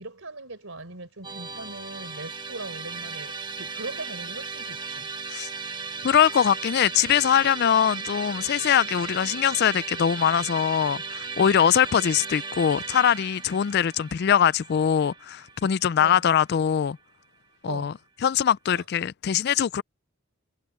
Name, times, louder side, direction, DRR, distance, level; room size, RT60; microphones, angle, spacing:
voice 1, 0.0-5.1 16.0-16.2 17.7-18.0 18.7-18.8, right 2 dB, 65° right, 4.4 m, -39 dB
Musical instrument, 1.2-16.4, right 5 dB, 20° right, 1.3 m, -36 dB
voice 2, 6.0-17.0 17.6-17.9 18.2-19.8, left 8 dB, 50° left, 0.3 m, -22 dB
head